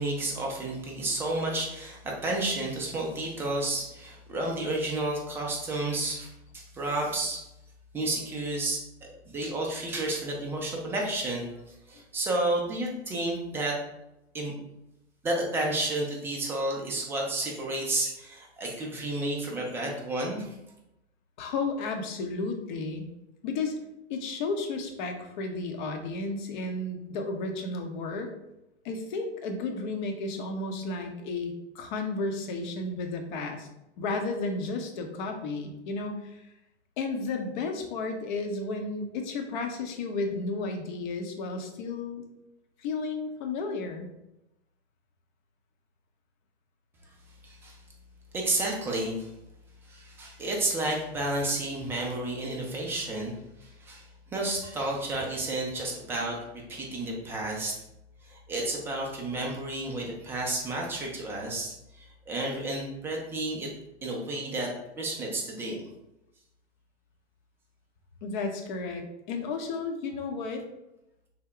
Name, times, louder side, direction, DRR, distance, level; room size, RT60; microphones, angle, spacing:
voice 1, 0.0-7.4 7.9-8.8 9.3-11.5 11.9-13.8 14.3-14.6 15.2-20.5 47.4-47.8 48.3-49.3 49.8-56.4 56.7-57.7 58.2-63.7 64.0-64.7 65.0-65.8, right 2 dB, 5° right, -1 dB, 0.3 m, -31 dB
voice 2, 21.4-23.0 23.4-23.8 24.1-28.3 28.8-33.7 34.0-36.4 37.0-42.2 42.8-44.1 68.2-70.7, left 3 dB, 45° left, 4 dB, 0.7 m, -33 dB
3.4 x 2.1 x 3.6 m, 0.88 s
figure-of-eight pair, 110°, 34 cm